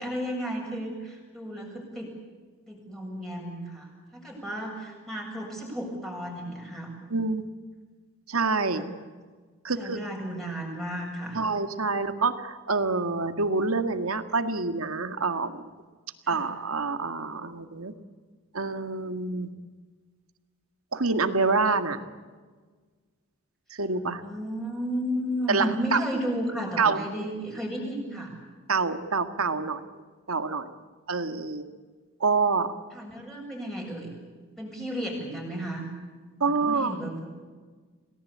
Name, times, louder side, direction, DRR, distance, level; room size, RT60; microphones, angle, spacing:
voice 1, 0.0-2.1 2.7-6.9 8.6-8.9 9.8-11.4 16.2-16.4 24.2-28.3 32.9-34.1 34.6-35.8 36.4-37.3, equal, ahead, -1 dB, 7.3 m, -33 dB
voice 2, 7.1-7.5 8.3-8.9 9.6-10.0 11.3-15.6 16.3-17.9 18.5-19.5 20.9-22.0 23.7-24.2 25.5-26.0 26.8-27.0 28.7-29.8 30.3-30.7 31.1-31.6 32.2-32.7 36.4-37.0, right 4 dB, 90° right, 9 dB, 1.9 m, -26 dB
28.0 x 18.5 x 8.7 m, 1.5 s
head